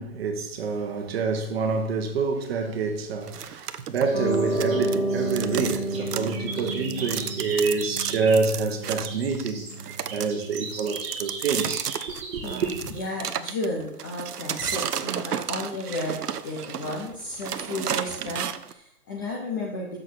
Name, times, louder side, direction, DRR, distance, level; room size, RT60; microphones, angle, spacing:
voice 1, 0.0-9.6 10.1-12.7, right 4 dB, 40° right, 1.4 m, -27 dB
sound 1, 2.9-3.7 4.0-8.6 8.8-12.8, right 4 dB, 15° right, 1.6 m, -39 dB
sound 2, 3.3-5.0 5.3-18.7, right 8 dB, 85° right, 0.8 m, -32 dB
Piano, 4.1-10.7, right 2 dB, 70° left, 4.4 m, -31 dB
voice 2, 12.4-20.0, left 1 dB, 15° left, 0.6 m, -33 dB
7.7 x 6.4 x 6.1 m
hypercardioid pair, 155°, 45 cm